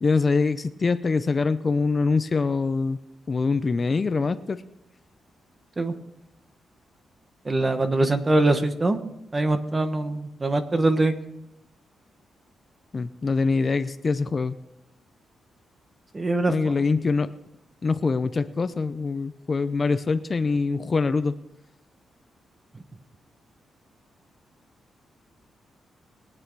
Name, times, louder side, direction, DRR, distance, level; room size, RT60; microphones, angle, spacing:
voice 1, 0.0-3.0 3.3-4.6 12.9-14.6 16.5-17.3 17.8-21.3, left 4 dB, 35° left, 12 dB, 0.5 m, -24 dB
voice 2, 7.4-9.0 9.3-11.1 16.1-16.5, right 2 dB, 25° right, 8 dB, 1.2 m, -23 dB
21.5 x 8.9 x 4.7 m, 0.87 s
cardioid pair, 115°, 0 cm